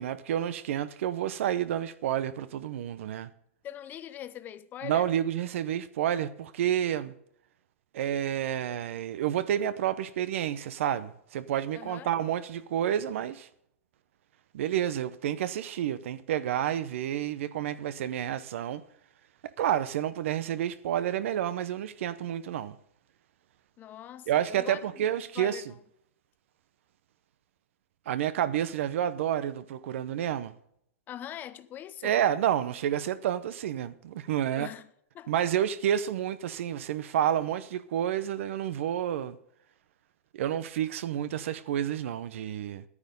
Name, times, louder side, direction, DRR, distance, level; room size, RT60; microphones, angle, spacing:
voice 1, 0.0-3.3 4.8-7.1 7.9-13.5 14.5-18.8 19.6-22.8 24.3-25.6 28.1-30.5 32.0-34.7 35.3-39.4 40.3-42.8, right 10 dB, 65° right, 0.7 m, -29 dB
voice 2, 3.6-5.1 11.7-12.1 23.8-25.0 25.3-25.8 31.1-32.2 34.6-34.9 35.1-35.5, left 11 dB, 25° left, 0.7 m, -42 dB
10.5 x 9.8 x 5.3 m
hypercardioid pair, 140°, 7 cm